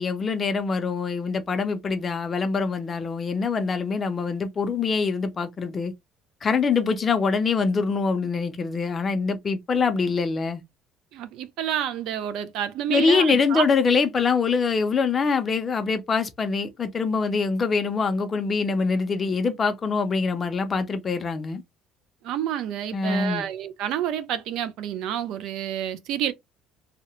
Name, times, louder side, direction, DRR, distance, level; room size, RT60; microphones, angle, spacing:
voice 1, 0.0-5.9 6.4-10.6 12.9-21.6 22.9-23.5, left 5 dB, 25° left, 0.5 m, -24 dB
voice 2, 11.1-13.7 22.2-26.3, right 10 dB, 60° right, 0.4 m, -29 dB
2.7 x 2.0 x 2.9 m
cardioid pair, 165°, 0 cm